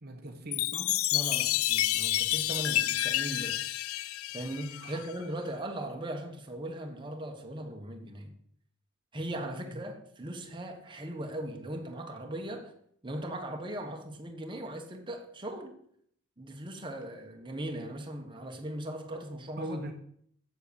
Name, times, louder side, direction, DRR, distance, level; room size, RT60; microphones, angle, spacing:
voice 1, 0.0-1.0 4.8-5.0 9.7-9.8 19.6-19.9, right 1 dB, 50° right, 1.1 m, -40 dB
Chime, 0.5-5.1, left 14 dB, 80° left, 0.4 m, -29 dB
voice 2, 1.1-8.4 9.1-12.7 13.0-15.7 16.4-19.8, right 1 dB, 25° right, 1.4 m, -39 dB
7.8 x 7.7 x 7.0 m
head